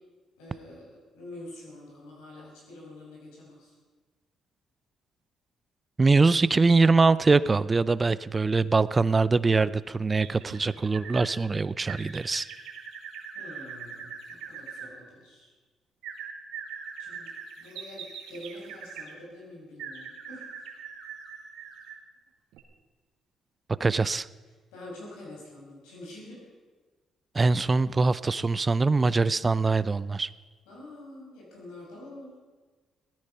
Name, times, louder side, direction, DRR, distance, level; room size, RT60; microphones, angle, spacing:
voice 1, 0.4-3.7 13.3-15.5 17.0-17.3 17.6-20.5 24.7-26.4 30.7-32.3, left 1 dB, 90° left, -3 dB, 6.1 m, -46 dB
voice 2, 6.0-12.5 23.8-24.3 27.3-30.3, right 3 dB, 30° right, 18 dB, 0.5 m, -23 dB
sound 1, 10.2-11.3 11.9-14.9 16.0-19.1 19.8-22.1 22.5-22.6, right 6 dB, 75° right, 1.9 m, -42 dB
17.0 x 13.5 x 5.6 m, 1.4 s
supercardioid pair, 60°, 0 cm